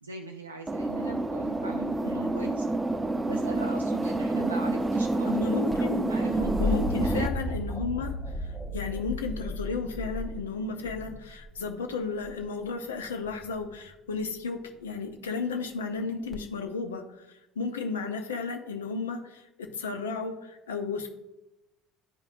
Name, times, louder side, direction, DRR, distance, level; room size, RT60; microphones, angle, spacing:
voice 1, 0.0-2.7 3.3-5.6 6.1-6.5 7.0-7.3, right 2 dB, 85° right, 2 dB, 0.3 m, -40 dB
sound 1, 0.7-7.3, right 2 dB, 15° right, 0.4 m, -28 dB
voice 2, 2.0-2.4 5.3-6.1 6.6-21.1, left 4 dB, 75° left, 6 dB, 0.7 m, -34 dB
sound 2, 5.7-11.6 13.2-13.8 16.3-16.4, left 1 dB, 10° left, 0.9 m, -34 dB
10.5 x 4.8 x 2.5 m, 0.97 s
figure-of-eight pair, 65°, 0 cm